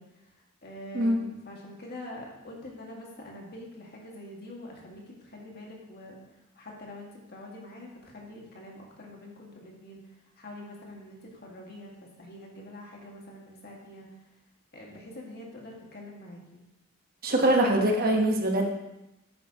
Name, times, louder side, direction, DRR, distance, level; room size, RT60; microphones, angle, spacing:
voice 1, 0.0-14.1 14.7-16.6, left 1 dB, 50° left, -2 dB, 1.9 m, -45 dB
voice 2, 17.2-18.7, right 1 dB, 45° right, 2 dB, 1.2 m, -23 dB
9.8 x 8.5 x 3.0 m, 0.93 s
head